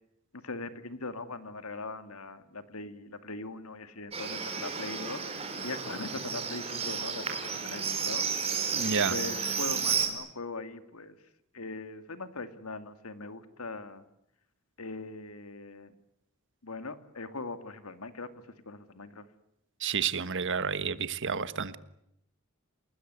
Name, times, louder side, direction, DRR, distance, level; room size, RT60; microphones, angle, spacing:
voice 1, 0.3-8.5 9.1-11.2 11.5-14.0 14.8-15.9 16.6-18.3 18.7-19.2, left 3 dB, 80° left, 2.3 m, -41 dB
Livestock farm animals working animals, 4.1-10.1, right 6 dB, 30° right, 5.0 m, -32 dB
voice 2, 8.7-9.2 19.8-21.8, right 6 dB, 60° right, 1.4 m, -30 dB
29.0 x 20.5 x 9.5 m
head